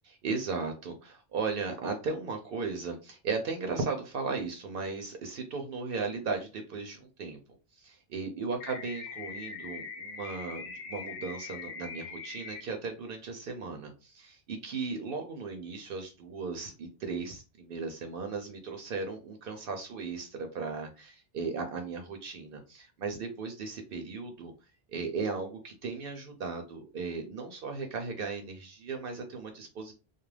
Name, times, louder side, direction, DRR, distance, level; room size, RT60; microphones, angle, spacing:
voice 1, 0.1-7.4 7.8-24.5 24.9-29.9, right 4 dB, 65° right, 4 dB, 0.7 m, -36 dB
sound 1, 8.6-12.6, left 5 dB, 80° left, 0.8 m, -42 dB
2.3 x 2.1 x 3.1 m, 0.31 s
omnidirectional pair, 1.1 m